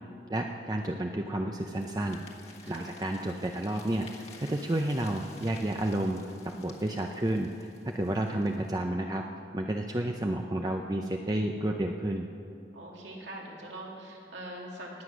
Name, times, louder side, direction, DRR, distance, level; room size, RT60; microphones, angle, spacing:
voice 1, 0.3-2.2 2.7-6.2 6.6-9.2 9.5-12.3, right 1 dB, 20° right, 3 dB, 0.5 m, -31 dB
sound 1, 1.6-8.8, left 4 dB, 35° left, 1.3 m, -53 dB
voice 2, 12.7-15.0, right 1 dB, 90° right, -1 dB, 2.6 m, -43 dB
19.0 x 8.3 x 6.1 m, 2.5 s
head